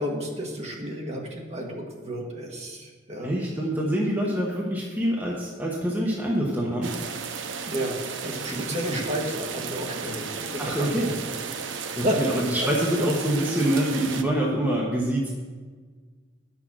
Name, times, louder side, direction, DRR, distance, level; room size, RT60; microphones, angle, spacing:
voice 1, 0.0-3.3 7.6-8.0 8.2-10.9 11.2-12.2, equal, 35° right, -1 dB, 1.6 m, -32 dB
voice 2, 3.2-6.9 8.5-9.0 10.6-11.1 12.0-15.3, right 1 dB, 10° right, -4 dB, 1.1 m, -26 dB
sound 1, 6.8-14.2, right 6 dB, 70° right, 0.7 m, -34 dB
10.5 x 6.1 x 6.2 m, 1.5 s
head